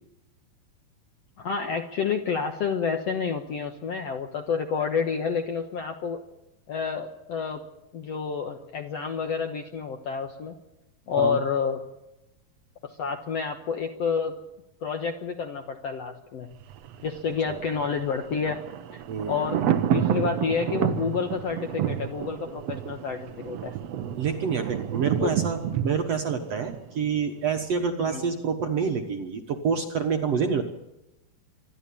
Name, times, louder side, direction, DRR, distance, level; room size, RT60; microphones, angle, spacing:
voice 1, 1.4-6.2 6.7-7.6 7.9-10.6 11.1-11.8 12.8-14.3 14.8-16.5 17.0-18.6 18.9-19.0 19.3-19.6 19.9-23.7 25.2-25.3 28.0-28.3, left 6 dB, 60° left, 5 dB, 1.7 m, -29 dB
Thunder, 16.5-27.5 27.8-27.9, right 10 dB, 80° right, 1.4 m, -30 dB
voice 2, 24.2-30.6, right 6 dB, 60° right, 4 dB, 1.9 m, -27 dB
25.5 x 12.0 x 8.6 m, 0.92 s
omnidirectional pair, 4.3 m